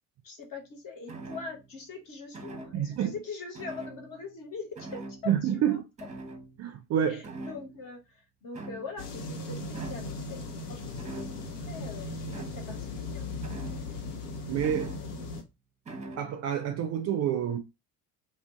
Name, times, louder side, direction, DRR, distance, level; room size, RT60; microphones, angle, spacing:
voice 1, 0.2-5.8 7.1-10.4 10.7-13.3, left 4 dB, 45° left, 1.2 m, -43 dB
sound 1, 1.1-1.8 2.3-3.0 3.5-4.5 4.8-5.4 6.0-6.9 7.2-8.0 8.5-9.2 9.7-10.2 11.0-11.6 12.3-12.8 13.4-14.1 14.6-15.4 15.9-16.3, right 2 dB, 15° right, 0.8 m, -43 dB
voice 2, 2.7-3.1 5.3-5.8 6.6-7.2 14.5-15.0 16.2-17.6, right 9 dB, 35° right, 0.4 m, -28 dB
sound 2, 9.0-15.4, left 2 dB, 75° left, 0.7 m, -38 dB
2.5 x 2.1 x 3.5 m
figure-of-eight pair, 60°, 47 cm